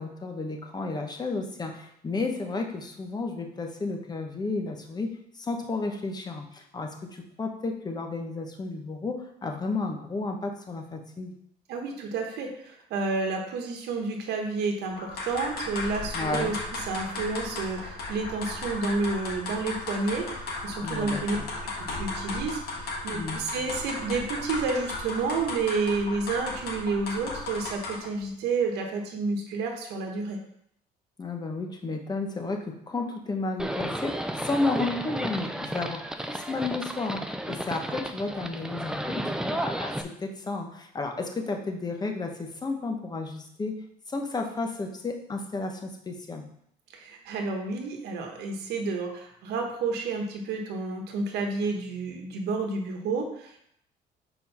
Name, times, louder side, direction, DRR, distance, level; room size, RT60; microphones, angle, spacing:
voice 1, 0.0-11.3 16.1-16.5 20.8-21.5 23.1-23.4 31.2-39.9 40.2-43.8 44.1-46.5, left 3 dB, 25° left, 3 dB, 1.0 m, -32 dB
voice 2, 11.7-16.6 16.9-21.4 21.9-30.4 46.9-53.6, right 3 dB, 80° right, 2 dB, 1.1 m, -30 dB
sound 1, 15.0-28.1, left 2 dB, 70° left, 1.8 m, -35 dB
Livestock farm animals working animals, 33.6-40.0, right 1 dB, 5° right, 0.5 m, -33 dB
4.5 x 4.4 x 5.6 m, 0.71 s
cardioid pair, 110°, 17 cm